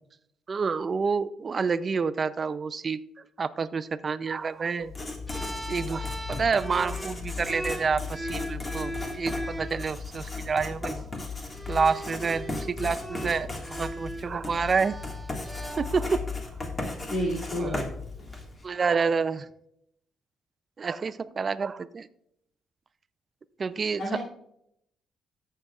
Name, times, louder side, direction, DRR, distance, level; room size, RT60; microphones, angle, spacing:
voice 1, 0.5-3.0 3.4-4.9 5.7-11.0 11.7-15.0 15.8-16.2 17.6-17.8 18.6-19.5 20.8-22.1 23.6-24.2, right 5 dB, 40° right, 13 dB, 0.4 m, -28 dB
Writing, 4.8-18.6, left 3 dB, 25° left, 1.8 m, -36 dB
sound 1, 5.3-9.8 10.8-11.0 11.5-16.3, right 1 dB, 5° right, 1.1 m, -39 dB
voice 2, 17.0-17.9 24.0-24.2, equal, 65° left, -6 dB, 2.5 m, -30 dB
14.0 x 6.6 x 2.4 m, 0.75 s
cardioid pair, 90°, 0 cm